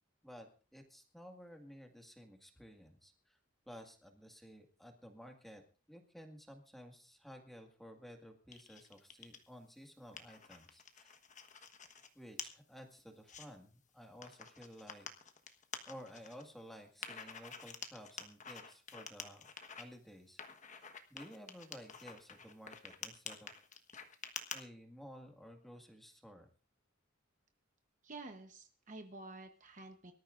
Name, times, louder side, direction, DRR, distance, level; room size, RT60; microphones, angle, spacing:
voice 1, 0.2-3.4 3.7-5.6 5.9-11.1 12.2-15.1 15.9-19.5 19.8-20.4 20.8-23.5 24.5-26.5, equal, ahead, 3 dB, 1.9 m, -54 dB
sound 1, 8.5-9.4 9.8-12.1 12.4-12.5 13.0-13.5 14.2-16.4 17.0-19.8 20.4-24.6, left 6 dB, 35° left, 1.3 m, -48 dB
voice 2, 28.0-30.1, right 2 dB, 35° right, 6 dB, 1.0 m, -50 dB
24.5 x 13.5 x 2.6 m, 0.36 s
head